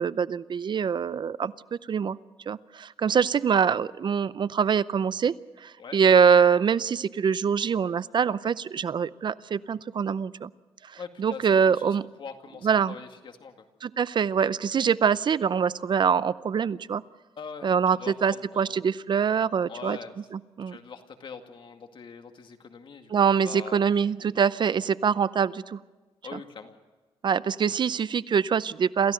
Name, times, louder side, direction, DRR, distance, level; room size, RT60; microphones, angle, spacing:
voice 1, 0.0-2.2 2.5-5.3 5.6-10.5 10.9-12.0 12.6-13.0 13.8-17.0 17.6-20.0 20.3-20.8 23.1-25.8 26.3-26.4 27.2-29.1, right 7 dB, 50° right, 17 dB, 0.5 m, -24 dB
voice 2, 11.0-13.6 17.4-17.7 18.0-18.8 19.7-20.1 20.7-23.1 23.4-23.9 26.2-26.8, left 5 dB, 55° left, 5 dB, 2.2 m, -42 dB
27.5 x 15.0 x 6.6 m, 1.3 s
cardioid pair, 105°, 10 cm